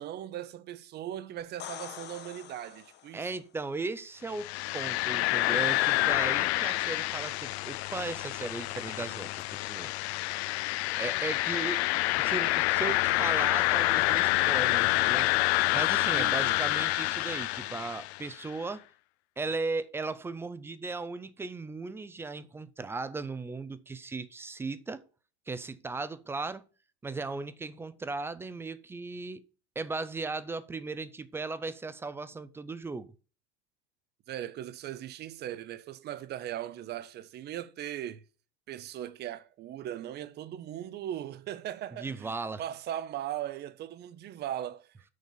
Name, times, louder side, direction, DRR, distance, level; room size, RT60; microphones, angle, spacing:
voice 1, 0.0-3.3 15.9-16.6 34.3-38.2 38.7-45.1, right 11 dB, 30° right, 0.7 m, -39 dB
sound 1, 1.4-3.3 7.1-7.2, left 11 dB, 30° left, 0.8 m, -45 dB
voice 2, 3.1-9.9 11.0-11.9 12.2-15.3 15.7-18.8 19.4-25.0 25.5-26.6 27.0-29.4 29.8-33.1 42.0-42.6, right 3 dB, 10° right, 0.3 m, -37 dB
sound 2, 4.3-18.3, left 19 dB, 75° left, 0.5 m, -28 dB
6.5 x 5.2 x 7.1 m
supercardioid pair, 130°, 33 cm